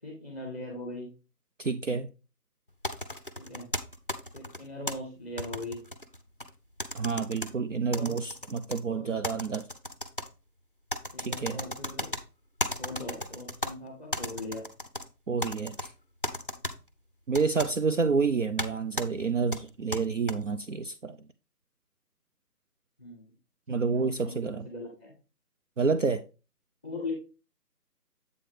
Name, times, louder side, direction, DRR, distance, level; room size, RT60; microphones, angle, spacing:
voice 1, 0.0-1.1 3.4-3.7 4.3-5.8 7.9-8.2 8.9-9.1 11.1-12.1 12.8-14.6 23.0-23.3 23.7-25.1 26.8-27.1, left 2 dB, 10° right, 1.1 m, -40 dB
voice 2, 1.6-2.1 6.9-9.7 11.2-11.6 15.3-15.9 17.3-21.2 23.7-24.7 25.8-26.2, right 5 dB, 55° right, 0.5 m, -29 dB
sound 1, 2.8-4.9 5.4-6.5 6.8-7.5 7.9-8.8 9.2-10.3 10.9-12.2 12.6-13.7 14.1-15.0 15.4-15.9 16.2-16.7 17.3-17.7 18.6-18.7 19.0-19.1 19.5-20.3, left 1 dB, 35° left, 0.4 m, -34 dB
7.9 x 3.6 x 4.8 m
hypercardioid pair, 170°, 47 cm